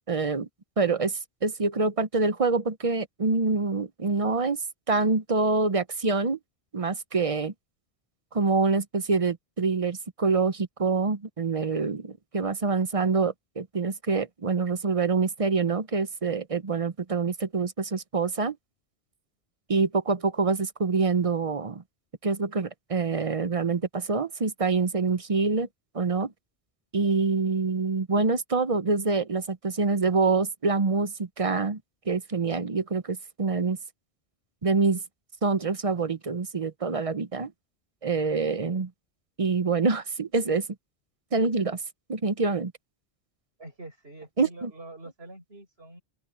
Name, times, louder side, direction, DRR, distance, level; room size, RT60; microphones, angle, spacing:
voice 1, 0.1-0.5 0.8-4.6 4.9-6.4 6.7-7.5 8.3-18.6 19.7-21.8 22.2-25.7 25.9-26.3 26.9-31.8 32.1-33.8 34.6-35.0 35.4-37.5 38.0-38.9 39.4-40.7 41.3-41.8 42.1-42.7 44.4-44.7, right 4 dB, 35° right, 0.8 m, -26 dB
voice 2, 43.6-46.0, right 2 dB, 75° right, 6.1 m, -45 dB
open air
omnidirectional pair, 1.1 m